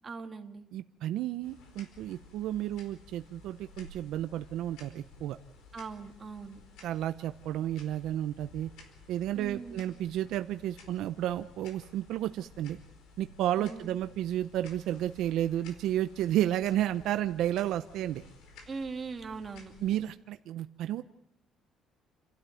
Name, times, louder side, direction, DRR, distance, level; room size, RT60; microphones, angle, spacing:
voice 1, 0.0-0.7 5.7-6.6 9.3-9.8 13.6-13.9 18.7-19.7, right 4 dB, 25° right, 4 dB, 2.0 m, -40 dB
voice 2, 0.7-5.4 6.8-8.7 9.1-12.8 13.2-18.2 19.8-21.0, right 12 dB, 75° right, 10 dB, 0.8 m, -32 dB
sound 1, 1.4-20.1, left 3 dB, 85° left, 4.7 m, -55 dB
29.5 x 13.0 x 9.2 m, 0.79 s
cardioid pair, 155°, 0 cm